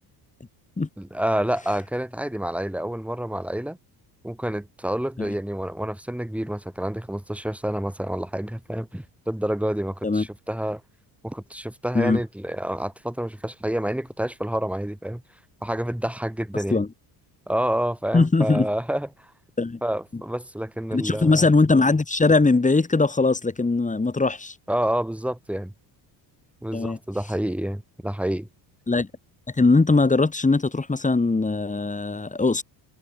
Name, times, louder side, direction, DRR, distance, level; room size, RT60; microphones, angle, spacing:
voice 1, 1.0-3.8 4.2-10.8 11.2-15.2 15.6-16.8 17.5-19.3 19.8-21.5 24.7-25.7 26.6-28.5, right 1 dB, 5° right, 6.9 m, -28 dB
voice 2, 18.1-18.7 19.6-19.8 20.9-24.5 26.7-27.0 28.9-29.1 29.6-32.6, left 3 dB, 15° left, 6.2 m, -20 dB
cardioid pair, 115°, 46 cm